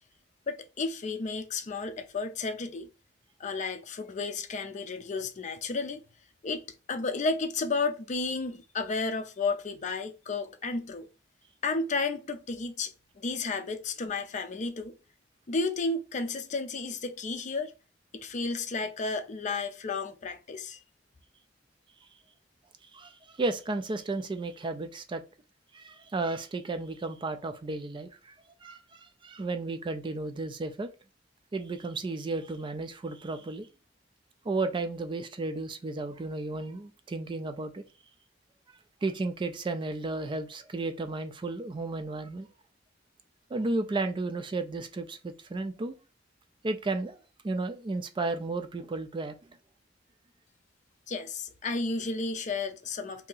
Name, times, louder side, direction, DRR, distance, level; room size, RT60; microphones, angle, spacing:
voice 1, 0.5-2.9 3.4-6.0 6.4-11.1 11.6-15.0 15.5-17.7 18.1-20.8 51.1-53.3, left 3 dB, 40° left, 0.5 m, -32 dB
voice 2, 22.9-25.2 25.7-28.4 28.6-30.9 31.5-33.7 34.4-37.8 39.0-42.5 43.5-46.0 46.6-47.2 47.4-49.4, right 3 dB, 25° right, 0.3 m, -33 dB
2.7 x 2.7 x 3.8 m
head